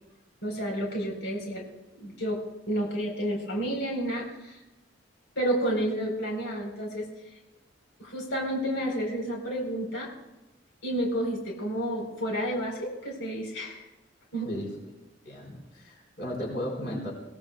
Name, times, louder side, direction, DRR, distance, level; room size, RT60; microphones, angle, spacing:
voice 1, 0.4-1.6 2.0-2.4 2.7-4.6 5.4-7.1 8.0-10.1 10.8-13.8 14.3-14.5, right 1 dB, 90° left, 0 dB, 4.1 m, -30 dB
voice 2, 15.2-17.1, equal, 60° left, -1 dB, 4.4 m, -35 dB
25.0 x 17.5 x 2.3 m, 1.0 s
head